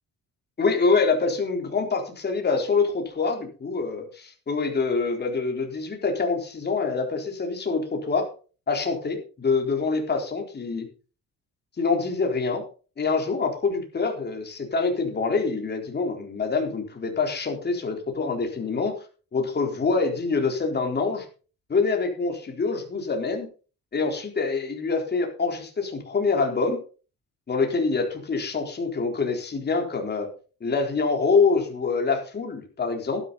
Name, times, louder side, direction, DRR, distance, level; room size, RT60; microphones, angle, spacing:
voice 1, 0.6-8.3 8.7-10.9 11.8-12.6 13.0-18.9 19.3-21.3 21.7-23.5 23.9-26.8 27.5-30.3 30.6-33.3, left 4 dB, 30° left, 2 dB, 3.9 m, -25 dB
13.0 x 12.0 x 4.1 m, 0.36 s
cardioid pair, 150°, 33 cm